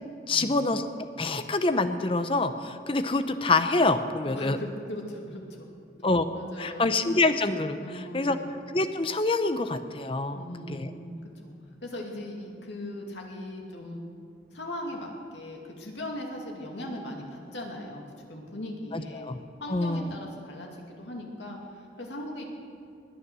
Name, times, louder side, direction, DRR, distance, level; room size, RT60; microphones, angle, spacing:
voice 1, 0.3-0.9 1.2-4.6 6.0-6.3 6.6-8.4 8.7-10.4 10.7-10.9 18.9-19.4 19.7-20.1, left 3 dB, 30° left, 9 dB, 0.7 m, -26 dB
voice 2, 4.4-5.7 6.3-6.9 7.8-8.5 10.3-11.5 11.8-14.0 14.5-18.0 18.3-19.3 19.6-20.7 21.0-22.4, left 1 dB, 80° left, 0 dB, 2.5 m, -39 dB
20.0 x 9.7 x 6.2 m, 2.3 s
head